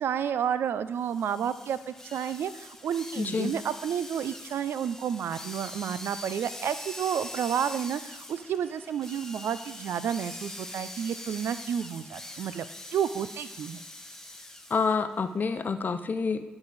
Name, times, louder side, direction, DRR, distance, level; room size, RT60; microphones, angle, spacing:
voice 1, 0.0-13.8, right 8 dB, 75° right, 14 dB, 0.4 m, -31 dB
sound 1, 1.0-15.0, left 1 dB, 10° left, 0.9 m, -43 dB
voice 2, 3.2-3.5 14.7-16.4, left 5 dB, 50° left, 11 dB, 0.6 m, -28 dB
10.5 x 4.8 x 4.1 m, 1.1 s
supercardioid pair, 50°, 4 cm